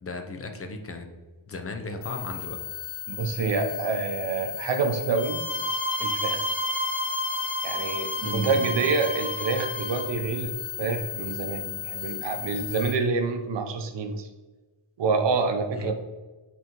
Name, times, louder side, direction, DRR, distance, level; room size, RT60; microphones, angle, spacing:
voice 1, 0.0-1.1 1.5-2.6 8.2-8.9 15.7-15.9, left 3 dB, 30° left, 5 dB, 0.5 m, -35 dB
sound 1, 2.0-12.9, left 10 dB, 60° left, 0.9 m, -36 dB
voice 2, 3.1-5.4 6.0-6.5 7.6-14.3 15.0-15.9, right 4 dB, 60° right, 6 dB, 0.8 m, -27 dB
sound 2, 5.2-10.1, equal, 5° right, 0.8 m, -31 dB
8.7 x 3.8 x 3.0 m, 1.2 s
wide cardioid pair, 170°, 49 cm